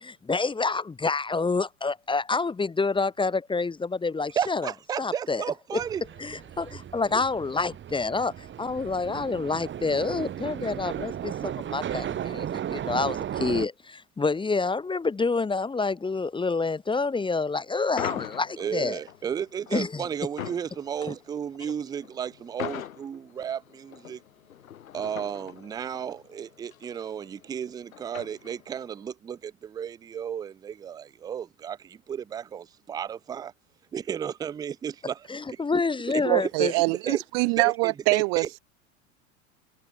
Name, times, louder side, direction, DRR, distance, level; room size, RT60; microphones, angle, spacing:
voice 1, 0.0-4.7 5.0-5.4 5.7-5.8 6.2-19.0 19.7-20.0 21.1-21.2 35.3-36.7, left 4 dB, 10° left, 1.1 m, -28 dB
voice 2, 4.4-6.0 18.6-24.2 24.9-33.5 33.9-35.6 36.1-38.5, right 8 dB, 10° right, 0.3 m, -34 dB
sound 1, 5.8-13.7, right 10 dB, 30° right, 1.6 m, -35 dB
sound 2, 18.0-28.9, left 10 dB, 80° left, 4.6 m, -41 dB
voice 3, 36.3-38.6, right 40 dB or more, 50° right, 1.1 m, -24 dB
hypercardioid pair, 90°, 41 cm